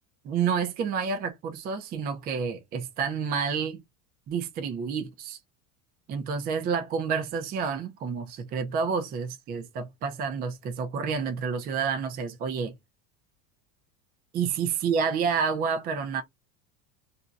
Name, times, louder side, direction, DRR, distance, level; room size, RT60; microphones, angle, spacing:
voice 1, 0.2-3.8 4.3-5.4 6.1-12.7 14.3-16.2, right 6 dB, 25° right, 0.4 m, -29 dB
2.6 x 2.2 x 3.9 m
cardioid pair, 160°, 43 cm